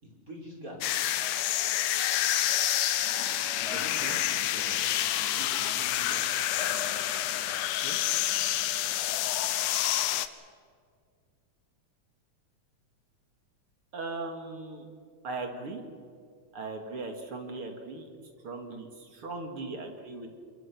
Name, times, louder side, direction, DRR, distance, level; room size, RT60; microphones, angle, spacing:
voice 1, 0.0-1.1 3.6-6.3, equal, 25° right, 0 dB, 5.0 m, -46 dB
sound 1, 0.8-10.3, left 13 dB, 85° left, 2.4 m, -28 dB
sound 2, 1.2-7.8, left 2 dB, 15° left, 1.2 m, -46 dB
voice 2, 13.9-14.9 15.2-15.8 16.5-18.1 18.4-20.3, right 3 dB, 50° right, 4 dB, 2.9 m, -38 dB
27.0 x 22.0 x 6.1 m, 2.1 s
omnidirectional pair, 3.4 m